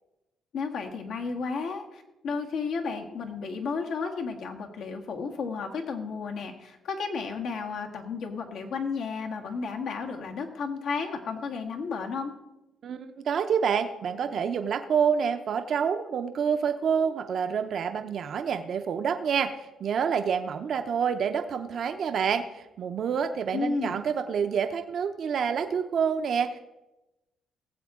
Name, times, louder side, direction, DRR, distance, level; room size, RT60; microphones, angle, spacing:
voice 1, 0.5-12.3 23.5-24.0, left 5 dB, 75° left, 1 dB, 1.7 m, -33 dB
voice 2, 12.8-26.6, right 7 dB, 60° right, 7 dB, 0.7 m, -28 dB
18.0 x 7.8 x 3.7 m, 0.98 s
cardioid pair, 90°, 0 cm